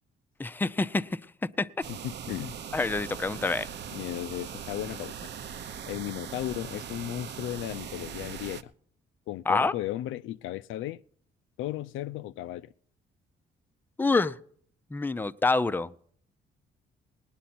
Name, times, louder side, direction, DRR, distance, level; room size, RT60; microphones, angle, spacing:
voice 1, 0.4-1.2 1.6-1.7 2.7-3.7 9.5-9.7 14.0-14.4 14.9-15.9, left 3 dB, 10° left, 0.4 m, -26 dB
sound 1, 1.8-8.6, right 7 dB, 60° right, 0.8 m, -40 dB
voice 2, 1.9-2.6 3.9-5.3 5.9-8.7 9.3-11.0 11.6-12.7, left 14 dB, 85° left, 0.4 m, -35 dB
18.5 x 10.0 x 4.3 m
cardioid pair, 90°, 20 cm